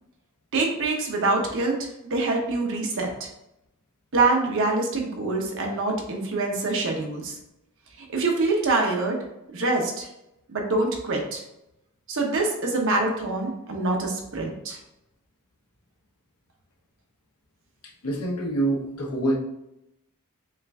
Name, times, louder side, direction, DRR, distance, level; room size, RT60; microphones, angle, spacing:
voice 1, 0.5-3.3 4.1-7.4 8.0-9.2 9.5-10.1 10.5-11.4 12.1-14.8, right 3 dB, 60° right, 1 dB, 0.9 m, -25 dB
voice 2, 18.0-19.4, right 1 dB, 80° left, 0 dB, 0.8 m, -25 dB
6.5 x 2.5 x 2.3 m, 0.86 s
head